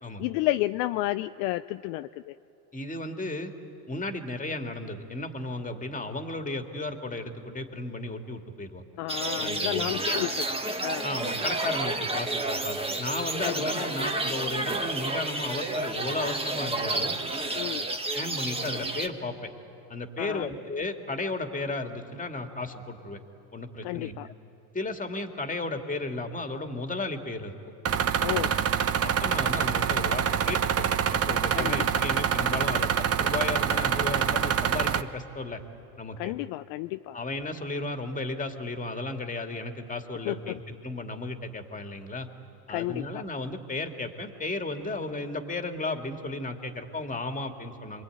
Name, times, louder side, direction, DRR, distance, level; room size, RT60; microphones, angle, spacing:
voice 1, 0.2-2.4 9.0-11.1 13.4-13.7 17.5-17.9 20.2-20.5 23.8-24.3 28.2-28.5 31.5-32.0 36.2-37.2 40.2-40.6 42.7-43.2, left 17 dB, 60° left, 11 dB, 0.6 m, -31 dB
voice 2, 2.7-3.5 3.9-8.8 9.4-9.9 11.0-17.1 18.1-19.5 19.9-23.2 23.5-24.2 24.7-27.5 28.2-28.6 29.0-35.6 36.0-36.3 37.1-42.3 42.7-48.0, left 2 dB, 15° left, 5 dB, 2.4 m, -34 dB
sound 1, 9.1-19.1, right 2 dB, 10° right, 1.8 m, -30 dB
sound 2, 27.9-35.0, right 8 dB, 30° right, 1.0 m, -26 dB
26.5 x 22.0 x 9.3 m, 2.9 s
hypercardioid pair, 80°, 49 cm